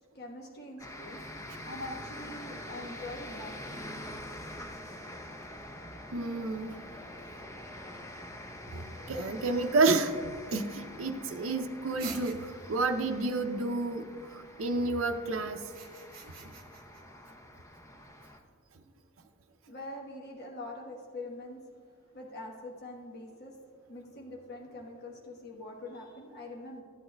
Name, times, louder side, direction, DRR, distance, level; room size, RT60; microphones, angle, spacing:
voice 1, 0.1-1.2 1.6-3.8 19.7-21.6 22.1-23.5 23.9-26.8, left 2 dB, 50° left, -1 dB, 1.1 m, -43 dB
sound 1, 0.8-18.4, left 1 dB, 15° left, 0.6 m, -45 dB
voice 2, 6.1-6.8 8.7-10.1 10.5-14.0 14.3-15.6 16.4-16.5, right 3 dB, 65° right, 4 dB, 0.5 m, -30 dB
sound 2, 12.0-12.8 15.6-17.0, right 5 dB, 45° right, 1.2 m, -46 dB
14.0 x 8.7 x 2.2 m, 2.1 s
head